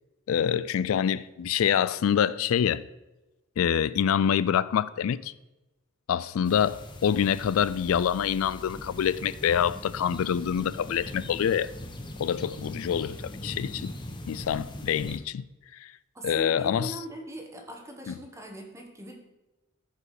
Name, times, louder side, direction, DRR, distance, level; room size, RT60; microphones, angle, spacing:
voice 1, 0.3-2.8 3.6-5.3 6.1-11.7 12.2-13.9 14.3-15.5 15.7-15.9 16.2-17.0 18.1-18.2, left 8 dB, 75° left, 0.3 m, -26 dB
sound 1, 6.4-15.2, left 1 dB, 25° left, 0.9 m, -41 dB
voice 2, 16.1-19.2, right 1 dB, 15° right, 1.2 m, -40 dB
14.0 x 4.9 x 4.9 m
head